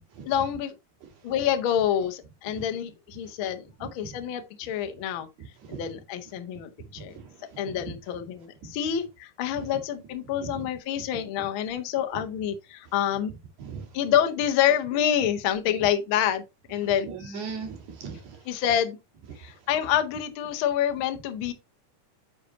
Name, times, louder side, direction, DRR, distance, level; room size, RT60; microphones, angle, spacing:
voice 1, 0.2-0.7 1.2-5.3 5.7-7.1 7.6-13.3 13.9-16.4 16.7-17.4 18.4-19.0 19.4-21.5, left 10 dB, 85° left, 1.1 m, -27 dB
voice 2, 17.0-18.4, right 5 dB, 70° right, 3.4 m, -37 dB
8.7 x 5.7 x 3.0 m
omnidirectional pair, 3.6 m